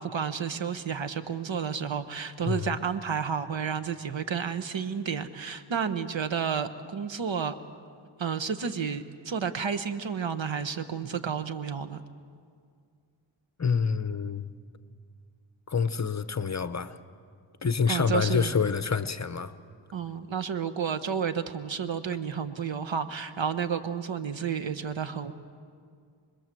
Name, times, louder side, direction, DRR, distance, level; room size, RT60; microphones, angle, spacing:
voice 1, 0.0-7.5 8.2-12.0 17.9-18.5 19.9-25.3, right 7 dB, 70° right, 10 dB, 1.3 m, -31 dB
voice 2, 2.4-2.8 13.6-14.5 15.7-17.0 17.6-19.5, left 6 dB, 35° left, 12 dB, 0.9 m, -27 dB
28.0 x 21.0 x 7.7 m, 2.2 s
wide cardioid pair, 75°, 48 cm